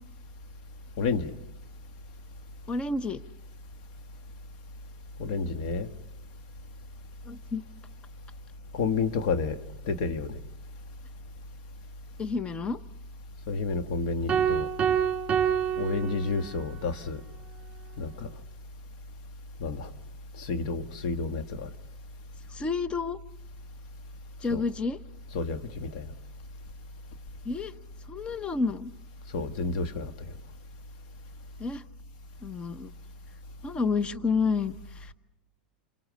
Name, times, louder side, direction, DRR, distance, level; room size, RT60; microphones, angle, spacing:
voice 1, 1.0-1.3 5.2-5.9 8.7-9.6 9.9-10.4 13.5-14.7 15.8-17.2 18.0-18.3 19.6-19.9 20.4-21.7 24.5-24.6 25.3-26.1 29.3-30.1, left 4 dB, 60° left, 1.7 m, -30 dB
voice 2, 2.7-3.2 7.2-7.6 12.2-12.8 22.5-23.2 24.4-25.0 27.4-27.7 28.1-28.9 31.6-31.8 32.4-32.9 33.6-35.1, left 4 dB, 20° left, 0.9 m, -30 dB
sound 1, 14.3-16.8, right 8 dB, 25° right, 2.7 m, -27 dB
28.5 x 23.5 x 6.5 m
hypercardioid pair, 110°, 5 cm